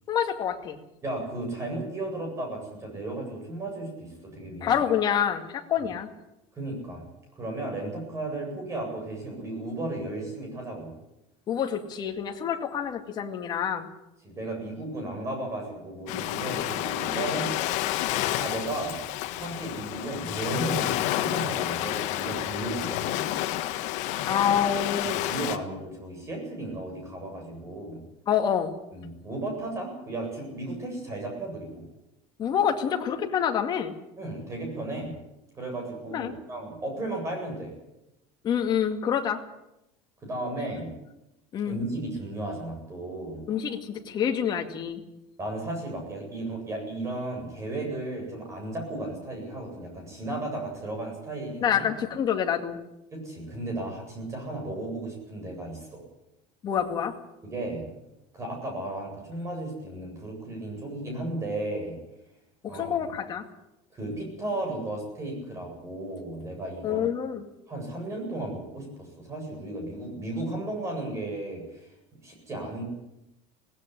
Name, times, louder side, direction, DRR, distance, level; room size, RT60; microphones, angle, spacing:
voice 1, 0.1-0.8 4.6-6.1 11.5-13.9 24.3-25.2 28.3-28.7 32.4-33.9 36.1-36.3 38.4-39.4 41.5-41.8 43.5-45.0 51.6-52.8 56.6-57.1 62.6-63.5 66.8-67.4, left 8 dB, 25° left, 4 dB, 2.2 m, -27 dB
voice 2, 1.0-4.9 6.5-7.1 7.3-10.9 14.2-17.5 18.3-19.0 19.4-23.3 25.1-28.0 28.9-31.8 34.2-35.1 35.5-37.8 40.2-40.9 41.6-43.4 45.4-51.8 53.1-56.0 57.4-58.0 58.3-62.0 62.7-63.0 63.9-67.0 67.7-71.9 72.2-72.8, right 2 dB, 20° right, 2 dB, 8.0 m, -34 dB
Ocean, 16.1-25.6, left 14 dB, 50° left, 1.6 m, -30 dB
18.5 x 17.0 x 10.0 m, 0.91 s
cardioid pair, 165°, 15 cm